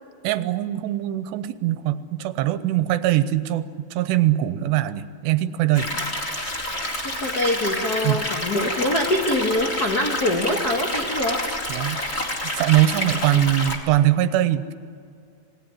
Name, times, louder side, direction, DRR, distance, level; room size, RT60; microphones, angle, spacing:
voice 1, 0.2-5.9 8.0-8.2 11.7-12.0 12.3-14.7, right 13 dB, 90° right, 12 dB, 3.0 m, -22 dB
sound 1, 5.7-13.8, left 1 dB, 20° left, 1.9 m, -28 dB
voice 2, 7.0-11.4, left 1 dB, 70° left, 2 dB, 0.9 m, -24 dB
27.0 x 19.0 x 10.0 m, 2.3 s
omnidirectional pair, 4.9 m